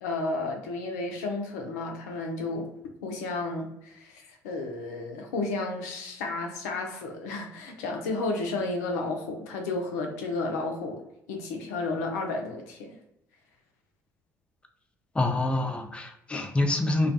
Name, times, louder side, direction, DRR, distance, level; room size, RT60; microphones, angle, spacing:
voice 1, 0.0-2.7 3.0-11.0 11.3-13.0, left 3 dB, 70° left, 3 dB, 0.4 m, -32 dB
voice 2, 15.1-17.1, left 2 dB, 10° left, 4 dB, 0.4 m, -26 dB
2.2 x 2.2 x 2.6 m, 0.79 s
figure-of-eight pair, 50°, 9 cm